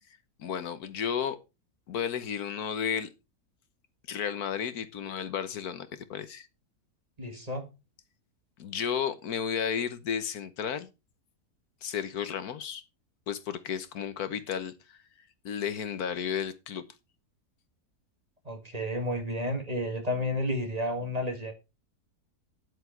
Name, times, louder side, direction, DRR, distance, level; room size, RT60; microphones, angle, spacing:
voice 1, 0.4-1.4 1.9-3.1 4.1-6.5 8.6-10.9 11.8-12.8 13.3-15.0 15.4-16.8, left 8 dB, 75° left, 1.5 m, -33 dB
voice 2, 7.2-7.6 18.5-21.5, left 1 dB, 25° right, 1.9 m, -31 dB
10.0 x 8.0 x 4.5 m
omnidirectional pair, 1.6 m